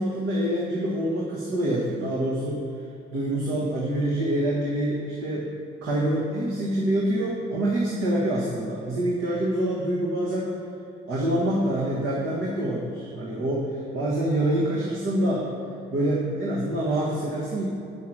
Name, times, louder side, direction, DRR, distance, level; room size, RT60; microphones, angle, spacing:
voice 1, 0.0-2.6 3.1-5.5 5.8-10.5 11.1-15.4 15.9-17.6, right 1 dB, 80° right, -4 dB, 1.5 m, -26 dB
8.4 x 5.8 x 6.1 m, 2.6 s
cardioid pair, 90°, 20 cm